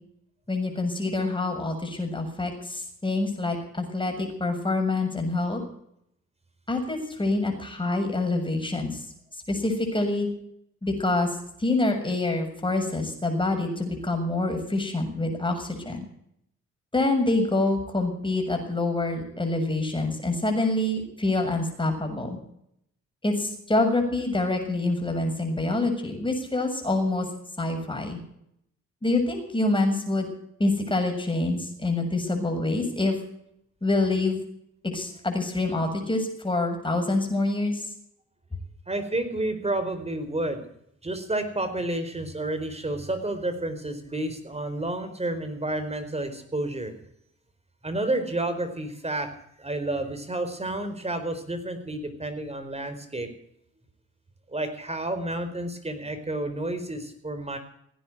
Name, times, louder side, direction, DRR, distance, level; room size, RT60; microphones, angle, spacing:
voice 1, 0.5-5.6 6.7-9.0 9.5-10.3 10.8-11.3 11.6-16.1 16.9-22.4 23.2-27.3 27.6-28.2 29.0-30.3 30.6-33.2 33.8-34.4 34.9-37.8, left 2 dB, 15° left, 3 dB, 7.0 m, -26 dB
voice 2, 38.9-40.6 41.0-46.9 47.8-49.3 49.6-53.3 54.5-57.6, right 1 dB, 20° right, 9 dB, 4.5 m, -30 dB
17.0 x 10.0 x 7.9 m, 0.73 s
supercardioid pair, 60°, 29 cm